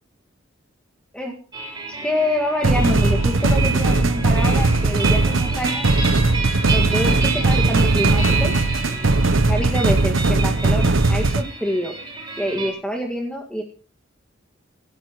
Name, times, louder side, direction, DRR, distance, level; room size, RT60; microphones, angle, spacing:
sound 1, 1.5-12.7, right 4 dB, 20° right, 6.5 m, -29 dB
voice 1, 1.9-5.9 6.7-8.5 9.5-11.9 12.4-13.6, left 1 dB, 5° left, 0 dB, 2.0 m, -26 dB
sound 2, 2.6-11.4, right 2 dB, 85° right, 0.9 m, -19 dB
26.5 x 13.0 x 3.1 m, 0.37 s
head